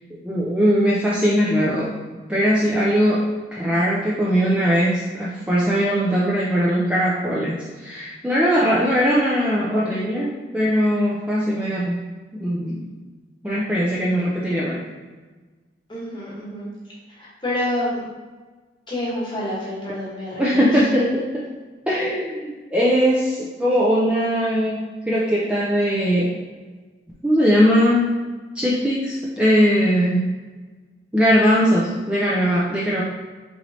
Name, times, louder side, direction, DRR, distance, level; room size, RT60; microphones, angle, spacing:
voice 1, 0.2-1.9 2.3-3.2 3.5-12.0 12.3-12.9 13.4-14.8 20.4-21.2 21.9-24.8 25.1-26.3 27.2-28.1 28.5-30.2 31.1-33.0, equal, 5° right, -7 dB, 0.4 m, -20 dB
voice 2, 15.9-16.7 17.1-18.0 18.9-20.8, left 1 dB, 25° left, -6 dB, 1.0 m, -28 dB
4.3 x 3.0 x 2.7 m, 1.3 s
head